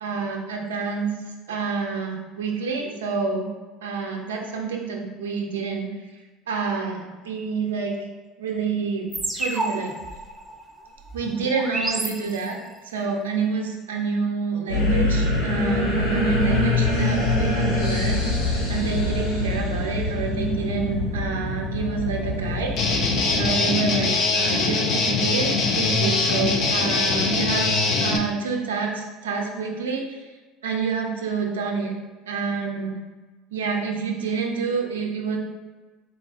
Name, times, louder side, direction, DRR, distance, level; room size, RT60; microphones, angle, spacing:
voice 1, 0.0-1.1 1.5-3.5 3.8-5.9 6.5-7.9 8.4-9.9 11.1-12.6 12.8-22.7 23.3-27.7 28.0-30.3 30.6-31.9 32.3-32.9 33.5-35.4, right 5 dB, 80° right, 1 dB, 0.6 m, -28 dB
sound 1, 9.1-12.8, right 2 dB, 15° right, 0.7 m, -31 dB
sound 2, 14.7-23.5, left 2 dB, 80° left, 0.9 m, -24 dB
Guitar, 22.8-28.2, left 3 dB, 50° left, 0.5 m, -22 dB
4.0 x 2.2 x 4.1 m, 1.3 s
hypercardioid pair, 70°, 0 cm